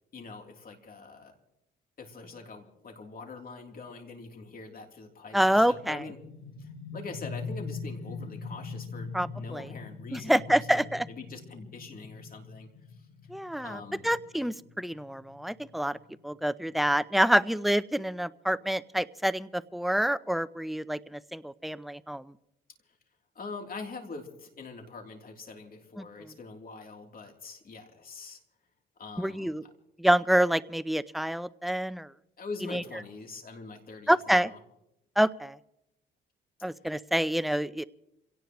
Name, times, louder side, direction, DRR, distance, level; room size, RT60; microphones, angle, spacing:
voice 1, 0.1-1.3 2.0-6.2 6.6-12.7 13.6-14.1 23.3-28.4 29.0-29.7 32.4-34.6, left 4 dB, 45° left, 3 dB, 3.2 m, -44 dB
voice 2, 5.3-6.0 9.1-9.7 10.1-11.0 13.3-16.0 16.2-22.3 26.0-26.1 29.2-29.6 30.0-32.1 32.7-32.8 34.1-34.5 35.2-35.6 36.6-37.8, right 1 dB, ahead, 15 dB, 0.5 m, -27 dB
sound 1, 5.4-16.8, left 4 dB, 85° left, 2.1 m, -42 dB
27.0 x 17.5 x 3.1 m, 0.86 s
cardioid pair, 90°, 20 cm